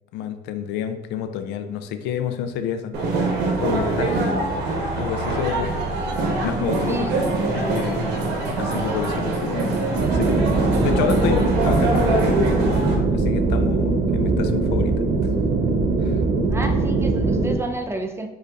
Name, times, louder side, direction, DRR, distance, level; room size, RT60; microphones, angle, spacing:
voice 1, 0.1-2.9 3.6-4.5 5.0-5.9 6.4-7.1 7.6-8.1 8.5-10.5 10.8-12.4 13.1-15.0 16.0-16.2, left 8 dB, 90° left, 9 dB, 0.4 m, -29 dB
sound 1, 2.9-12.9, right 2 dB, 80° right, 1.1 m, -24 dB
voice 2, 6.8-7.9 16.5-18.3, right 2 dB, 15° right, 4 dB, 0.5 m, -31 dB
sound 2, 9.9-17.6, right 3 dB, 60° right, 0.5 m, -21 dB
5.4 x 3.8 x 2.4 m, 1.0 s
cardioid pair, 110°, 17 cm